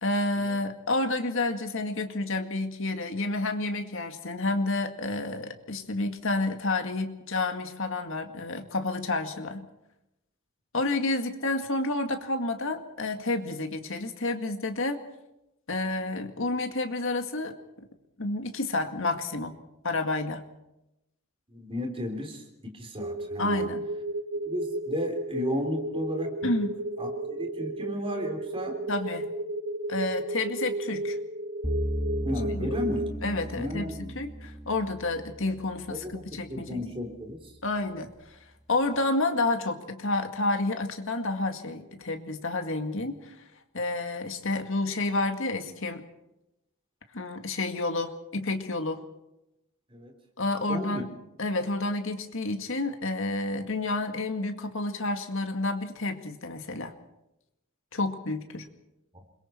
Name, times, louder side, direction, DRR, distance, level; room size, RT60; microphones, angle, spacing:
voice 1, 0.0-9.7 10.7-15.0 15.7-17.9 18.2-19.6 19.8-20.4 23.4-23.8 26.4-26.7 28.9-29.3 29.9-31.2 32.5-32.7 33.2-36.8 37.6-38.4 38.7-43.4 43.7-46.1 47.1-49.0 50.4-51.1 51.4-56.9 57.9-58.7, left 2 dB, 60° left, 6 dB, 2.1 m, -30 dB
voice 2, 21.5-22.4 22.7-23.7 24.5-26.3 27.0-28.8 32.2-33.1 33.5-34.2 35.9-37.5 49.9-50.1 50.7-51.0 59.1-59.2, left 1 dB, 25° right, 3 dB, 3.6 m, -34 dB
sound 1, 23.0-33.1, right 1 dB, 90° right, 2.2 m, -33 dB
sound 2, 31.6-36.8, right 1 dB, 5° right, 1.4 m, -35 dB
28.5 x 22.5 x 4.5 m, 0.88 s
head